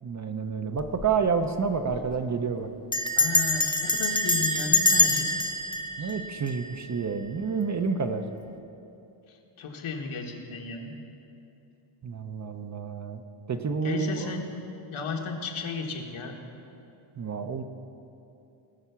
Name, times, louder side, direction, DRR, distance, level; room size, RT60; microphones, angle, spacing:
voice 1, 0.0-2.7 6.0-8.2 12.0-13.2 13.5-14.3 17.2-17.6, right 5 dB, 35° right, 7 dB, 0.6 m, -29 dB
Bell, 0.8-1.2 1.4-1.5 1.7-2.1 2.9-7.0, left 2 dB, 10° left, 0.3 m, -25 dB
voice 2, 3.2-5.3 6.0-6.1 9.3-10.9 13.8-14.4 14.9-16.4, left 4 dB, 75° left, 2 dB, 1.6 m, -34 dB
19.5 x 7.0 x 5.7 m, 2.8 s
wide cardioid pair, 175°, 49 cm